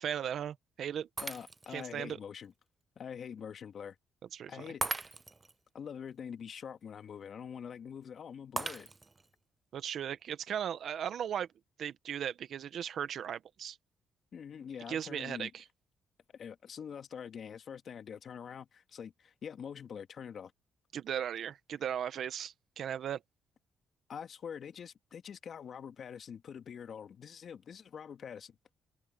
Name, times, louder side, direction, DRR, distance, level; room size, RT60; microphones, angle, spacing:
voice 1, 0.0-1.1 1.7-2.2 4.3-4.7 9.7-11.5 11.8-13.8 14.9-15.6 20.9-23.2, right 9 dB, 65° right, 1.0 m, -37 dB
voice 2, 1.2-2.5 3.0-4.0 4.5-5.1 5.7-8.9 14.3-15.5 16.3-20.5 24.1-28.6, left 7 dB, 55° left, 1.9 m, -45 dB
Shatter, 1.2-1.9 2.4-2.5 4.8-5.5 8.6-9.3, right 3 dB, 25° right, 0.5 m, -38 dB
open air
cardioid pair, 90°, 0 cm